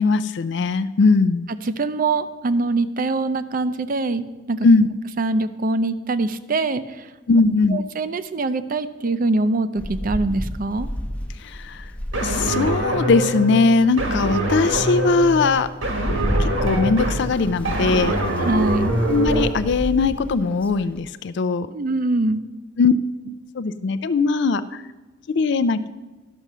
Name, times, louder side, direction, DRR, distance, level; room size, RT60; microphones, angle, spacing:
voice 1, 0.0-1.5 4.6-4.9 7.3-7.8 11.4-11.9 12.2-15.7 16.4-18.1 19.1-21.7 22.8-22.9 23.5-24.8 25.3-25.9, left 4 dB, 60° left, 13 dB, 0.4 m, -20 dB
voice 2, 1.6-4.7 5.2-7.1 7.7-10.9 18.4-18.9 21.7-22.4, right 2 dB, 45° right, 13 dB, 0.5 m, -23 dB
Rain, 9.8-13.3 13.8-13.9 14.4-21.0, equal, 5° left, 0.7 m, -31 dB
sound 1, 12.1-19.5, right 1 dB, 85° right, 1.8 m, -24 dB
12.0 x 6.1 x 6.6 m, 1.2 s
head